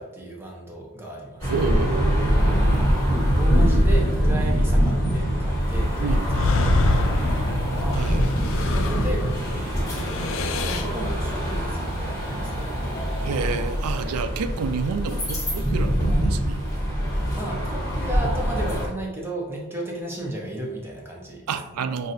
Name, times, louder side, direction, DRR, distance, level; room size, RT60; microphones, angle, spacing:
voice 1, 0.0-1.6 2.8-7.1 7.7-8.0 8.6-12.8 17.3-21.9, right 1 dB, 10° right, 0.6 m, -34 dB
sound 1, 1.4-18.9, equal, 15° left, 1.4 m, -23 dB
voice 2, 1.4-2.8 6.0-6.8 7.9-8.2 13.2-16.6 21.5-22.1, right 5 dB, 90° right, 0.4 m, -29 dB
sound 2, 6.2-9.4 9.8-11.0, left 3 dB, 60° left, 0.3 m, -27 dB
5.8 x 2.5 x 2.6 m
head